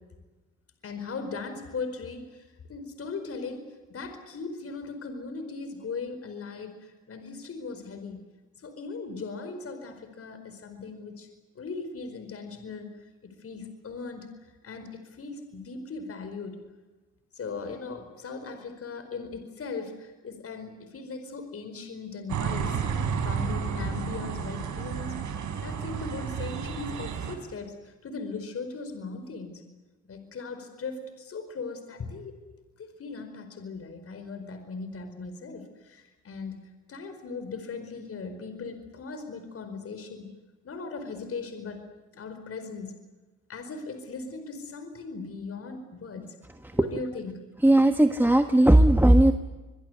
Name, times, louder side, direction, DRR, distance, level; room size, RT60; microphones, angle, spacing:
voice 1, 0.8-8.2 8.6-11.3 11.5-14.3 14.6-16.6 17.3-22.8 23.2-25.2 25.6-29.6 30.1-32.4 32.8-36.6 36.9-40.4 40.6-41.8 42.1-43.0 43.5-46.3 46.8-47.4, left 4 dB, 50° left, 8 dB, 4.9 m, -38 dB
sound 1, 22.3-27.4, right 6 dB, 70° right, 4.7 m, -31 dB
voice 2, 47.6-49.3, right 1 dB, 5° right, 7 dB, 1.4 m, -18 dB
24.5 x 23.0 x 8.1 m, 1.2 s
cardioid pair, 90°, 30 cm